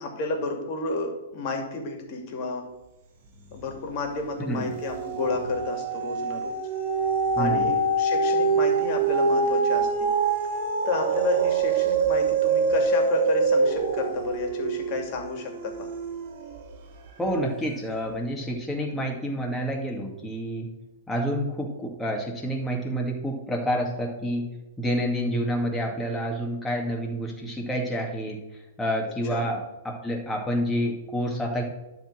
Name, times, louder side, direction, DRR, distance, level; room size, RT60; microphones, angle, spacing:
voice 1, 0.0-2.6 3.5-6.6 7.4-10.1 10.9-15.9 18.8-19.1 29.3-29.4, left 3 dB, 40° left, 3 dB, 2.5 m, -31 dB
sound 1, 3.4-3.9 4.3-16.8 17.3-17.4, right 4 dB, 45° right, 1.7 m, -25 dB
voice 2, 4.4-4.7 7.4-7.7 17.2-20.7 21.1-24.5 24.8-28.4 28.8-31.6, equal, 10° left, 0 dB, 2.2 m, -28 dB
11.5 x 4.0 x 7.7 m, 1.0 s
figure-of-eight pair, 110°, 0 cm